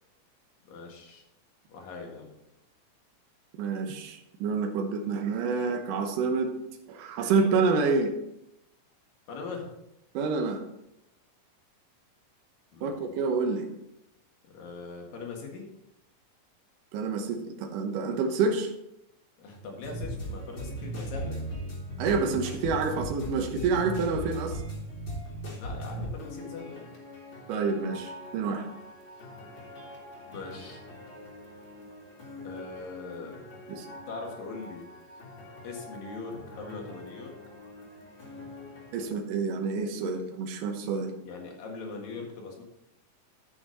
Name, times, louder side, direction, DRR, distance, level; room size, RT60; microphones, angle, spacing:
voice 1, 0.7-1.2 1.7-2.3 9.3-9.7 12.7-13.0 14.4-15.7 19.4-21.8 25.6-26.9 30.3-30.8 32.4-33.4 34.1-34.9 35.6-37.3 41.2-42.6, left 4 dB, 85° left, 1 dB, 3.5 m, -41 dB
voice 2, 3.6-6.5 6.9-8.1 10.1-10.6 12.8-13.7 16.9-18.7 22.0-24.6 27.5-28.7 33.7-33.9 38.9-41.1, right 4 dB, 80° right, 3 dB, 2.6 m, -28 dB
sound 1, 19.8-39.1, right 1 dB, 40° left, 2.6 m, -40 dB
13.0 x 6.2 x 4.1 m, 0.85 s
omnidirectional pair, 3.9 m